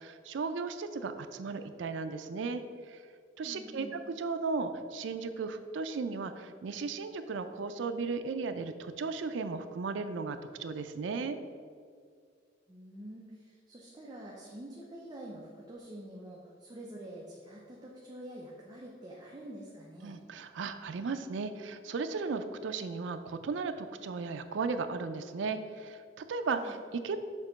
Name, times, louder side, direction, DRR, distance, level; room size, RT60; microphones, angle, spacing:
voice 1, 0.0-2.6 2.9-3.0 3.4-11.4 20.0-27.2, right 4 dB, 75° right, 9 dB, 0.4 m, -36 dB
voice 2, 3.4-3.9 12.7-20.2 26.4-26.8, right 1 dB, 20° right, -4 dB, 0.6 m, -47 dB
6.4 x 2.9 x 5.1 m, 2.1 s
head